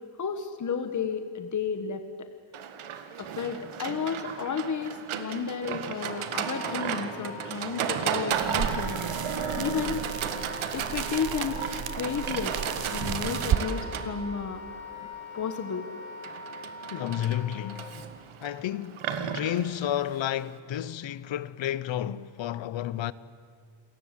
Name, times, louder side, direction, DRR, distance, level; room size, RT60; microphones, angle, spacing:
voice 1, 0.2-2.0 3.2-9.0 9.6-10.0 10.7-11.6 11.9-12.6 12.9-14.6 15.3-15.8, left 6 dB, 40° left, 1.4 m, -32 dB
Livestock farm animals working animals, 2.5-20.6, right 8 dB, 90° right, 2.0 m, -34 dB
Wind instrument woodwind instrument, 6.0-17.9, left 3 dB, 90° left, 3.3 m, -43 dB
sound 1, 8.3-13.7, right 10 dB, 50° right, 0.8 m, -33 dB
voice 2, 16.9-17.9 18.4-23.1, left 11 dB, 70° left, 0.9 m, -31 dB
29.0 x 22.5 x 8.3 m
wide cardioid pair, 170°, 47 cm